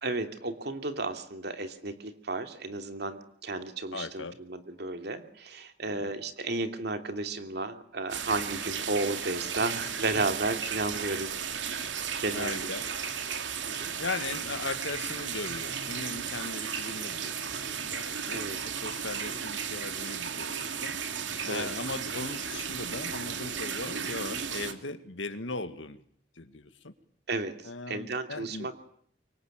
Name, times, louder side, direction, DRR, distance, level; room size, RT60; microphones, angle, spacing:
voice 1, 0.0-11.3 11.5-11.8 12.2-12.7 13.6-13.9 18.3-18.6 21.5-21.8 27.3-27.5 27.9-28.8, right 2 dB, 60° right, 7 dB, 2.8 m, -33 dB
voice 2, 3.9-4.4 5.9-6.1 12.3-12.9 14.0-26.0 26.4-26.9 27.6-28.7, left 3 dB, 85° left, 10 dB, 2.0 m, -38 dB
sound 1, 8.1-24.7, right 7 dB, 75° right, 2.6 m, -35 dB
25.5 x 23.0 x 9.1 m, 0.64 s
head